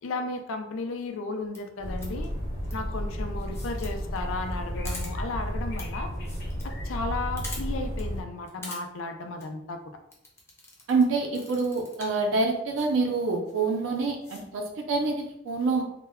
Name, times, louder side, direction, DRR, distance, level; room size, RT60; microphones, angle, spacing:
voice 1, 0.0-2.3 2.7-6.1 6.6-9.8, left 3 dB, 80° left, 6 dB, 0.4 m, -34 dB
sound 1, 1.4-1.6 2.0-2.3 2.6-2.7 3.4-3.9 4.2-4.3 4.5-4.6 4.8-5.1 5.8-5.9 6.1-6.6 6.9-7.0 7.4-7.6 8.0-8.1 8.5-8.8 9.2-9.4 10.1-11.0 11.3-12.2 12.8-12.9 13.5-13.6 14.0-14.4, left 2 dB, 15° left, 0.4 m, -42 dB
sound 2, 1.8-8.2, equal, 55° left, 0.7 m, -32 dB
voice 2, 10.9-15.8, right 3 dB, 80° right, 1 dB, 0.4 m, -26 dB
2.1 x 2.1 x 3.4 m, 0.82 s
head